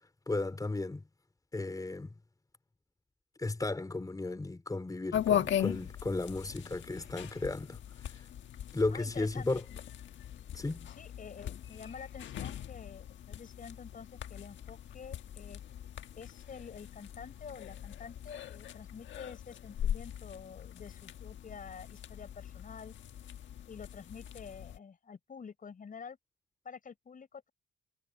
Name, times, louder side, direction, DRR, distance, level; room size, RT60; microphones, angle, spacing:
voice 1, 0.3-1.0 1.5-2.1 3.4-8.2 8.7-9.6 10.5-10.9, left 2 dB, 20° left, 4.3 m, -35 dB
sound 1, 5.1-24.8, left 10 dB, 70° left, 1.5 m, -39 dB
voice 2, 8.9-9.8 10.9-15.6 16.2-22.9 23.7-26.2 26.6-27.5, left 6 dB, 45° left, 5.7 m, -48 dB
cardioid pair, 90°, 20 cm